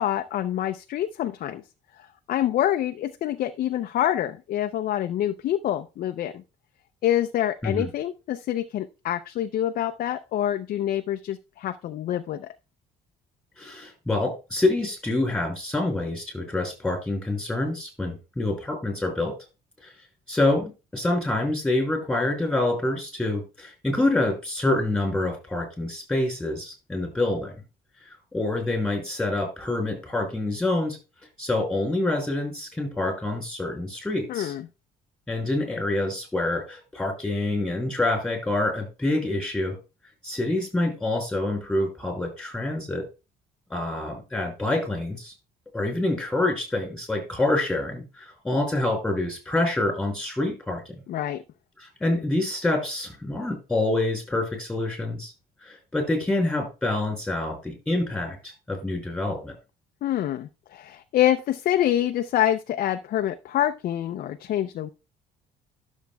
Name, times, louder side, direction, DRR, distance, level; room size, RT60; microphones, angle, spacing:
voice 1, 0.0-1.6 2.3-6.4 7.0-12.5 34.3-34.7 51.1-51.4 60.0-64.9, left 11 dB, 60° left, 8 dB, 0.5 m, -26 dB
voice 2, 13.6-19.3 19.8-19.9 20.3-27.5 28.0-31.0 31.4-34.5 35.3-39.8 40.2-43.0 43.7-45.3 45.7-51.0 51.8-55.3 55.6-59.5, left 2 dB, 5° left, 2 dB, 5.6 m, -26 dB
12.5 x 7.2 x 2.3 m, 0.29 s
cardioid pair, 110°, 17 cm